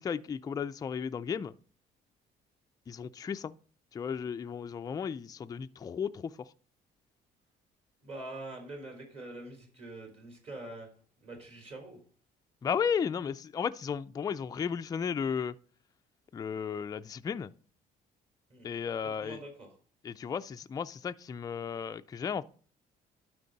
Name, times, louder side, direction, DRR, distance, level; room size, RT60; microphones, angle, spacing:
voice 1, 0.0-1.5 2.9-3.5 3.9-6.5 12.6-15.5 16.3-17.5 18.6-19.4 20.0-22.4, left 7 dB, 20° left, 0.3 m, -34 dB
voice 2, 8.0-10.9 11.2-12.0 18.5-18.7 19.2-19.7, right 2 dB, 40° right, 3.7 m, -44 dB
12.0 x 4.6 x 4.0 m
cardioid pair, 110°, 17 cm